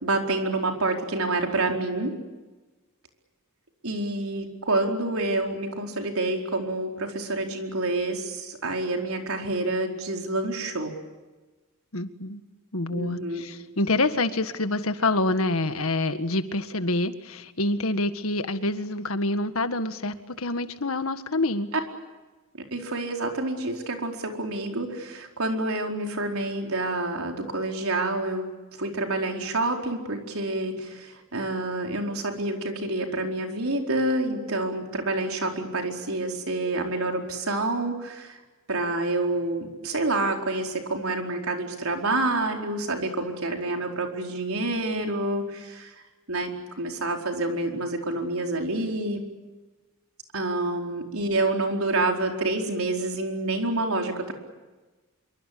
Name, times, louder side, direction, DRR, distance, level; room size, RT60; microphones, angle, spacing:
voice 1, 0.0-2.1 3.8-10.9 12.9-13.4 22.7-28.5 28.8-38.4 38.7-45.9 46.3-46.5 46.8-49.2 50.3-54.3, right 2 dB, 90° right, 2 dB, 4.6 m, -28 dB
voice 2, 11.9-12.4 12.7-21.7, left 2 dB, 85° left, 9 dB, 1.8 m, -27 dB
26.5 x 24.0 x 8.6 m, 1.2 s
head